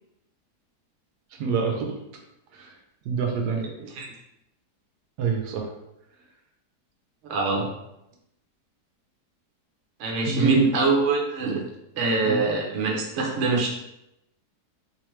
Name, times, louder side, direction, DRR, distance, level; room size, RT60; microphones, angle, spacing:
voice 1, 1.4-1.9 2.5-2.7 3.1-3.6 5.2-5.7 10.3-10.6 12.2-12.4, right 5 dB, 80° right, 2 dB, 1.1 m, -25 dB
voice 2, 7.3-7.7 10.0-11.6 11.9-13.7, right 3 dB, 55° right, -1 dB, 0.9 m, -24 dB
3.3 x 3.0 x 3.1 m, 0.86 s
omnidirectional pair, 1.7 m